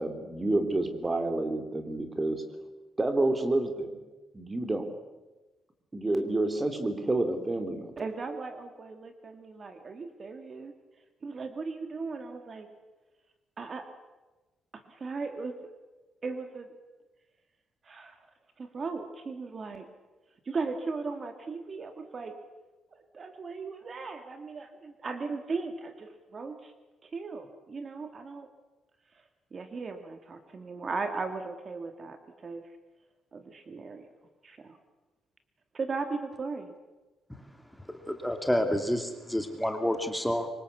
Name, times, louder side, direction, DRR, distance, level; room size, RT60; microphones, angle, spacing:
voice 1, 0.0-2.4 3.0-4.0 4.3-4.8 5.9-7.9, right 2 dB, 15° right, 8 dB, 3.3 m, -29 dB
voice 2, 8.0-10.7 11.2-12.7 13.6-13.9 14.7-15.7 16.2-16.7 17.8-18.3 18.6-19.9 20.5-22.4 22.9-26.7 27.0-28.5 29.5-32.7 33.3-34.1 34.4-34.8 35.7-36.7, right 4 dB, 35° right, 7 dB, 2.1 m, -37 dB
voice 3, 38.1-40.5, equal, 5° left, 5 dB, 2.5 m, -29 dB
26.0 x 24.5 x 8.4 m, 1.2 s
cardioid pair, 135°, 0 cm